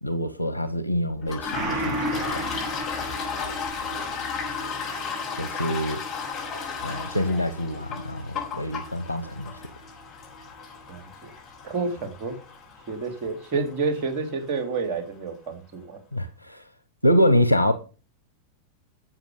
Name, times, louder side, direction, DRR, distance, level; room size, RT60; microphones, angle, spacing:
voice 1, 0.0-2.5 5.3-6.0 6.8-9.5 16.1-16.6 17.0-17.7, equal, 90° right, 0.9 m, -25 dB
Toilet flush, 1.2-14.6, left 6 dB, 35° left, 6.1 m, -35 dB
Gong, 1.5-10.5 10.8-10.9, right 1 dB, 20° right, 7.3 m, -36 dB
voice 2, 10.9-11.3 11.6-12.3 12.9-16.0, right 4 dB, 40° right, 3.4 m, -30 dB
12.0 x 7.5 x 5.2 m
figure-of-eight pair, 90°, 0 cm